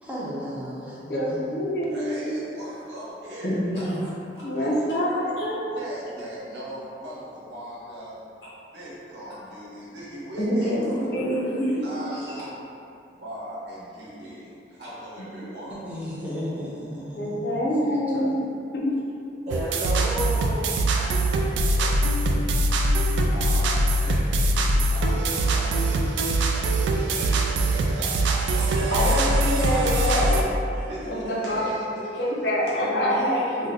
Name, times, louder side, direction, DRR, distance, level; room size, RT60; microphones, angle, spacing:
voice 1, 0.0-1.6 15.8-17.6 17.8-18.4, equal, 10° right, -7 dB, 0.5 m, -35 dB
voice 2, 1.1-2.3 4.4-5.8 11.3-11.8 17.1-18.4 18.7-18.9 31.2-31.6 32.2-33.1, equal, 65° left, -4 dB, 0.5 m, -26 dB
voice 3, 1.9-4.1 4.6-5.3 5.7-8.1 8.6-10.7 11.8-12.6 13.2-15.8 23.3-27.1 27.5-28.9 29.7-30.4 30.8-32.6, equal, 75° right, -7 dB, 0.9 m, -39 dB
voice 4, 3.4-4.1 10.4-10.8 11.1-11.5 28.5-30.5 31.0-31.7 32.7-33.7, equal, 85° left, -9 dB, 1.2 m, -26 dB
voice 5, 19.5-21.9 23.4-23.5 24.4-24.5 27.2-27.3 28.8-29.2, left 1 dB, 40° right, -9 dB, 1.0 m, -33 dB
sound 1, 19.5-30.4, right 1 dB, 90° right, 0.3 m, -22 dB
2.6 x 2.1 x 3.9 m, 2.6 s
head